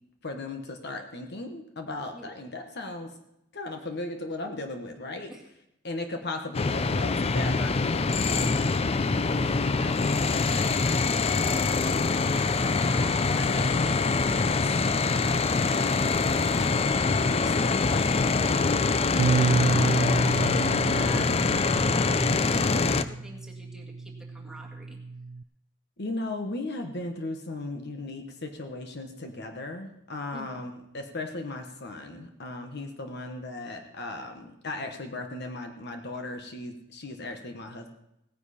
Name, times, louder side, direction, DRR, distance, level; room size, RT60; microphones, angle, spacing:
voice 1, 0.2-3.2 3.5-5.3 5.8-9.1 26.0-37.9, left 2 dB, 55° left, 5 dB, 1.3 m, -37 dB
sound 1, 6.5-23.0, left 4 dB, 30° left, 0.4 m, -24 dB
voice 2, 9.8-11.8 12.8-14.7 15.2-17.1 17.4-18.4 18.7-25.0 30.3-30.6, equal, ahead, -1 dB, 2.0 m, -45 dB
Bass guitar, 19.2-25.4, right 3 dB, 60° right, 0.3 m, -30 dB
17.0 x 9.9 x 4.3 m, 0.82 s
head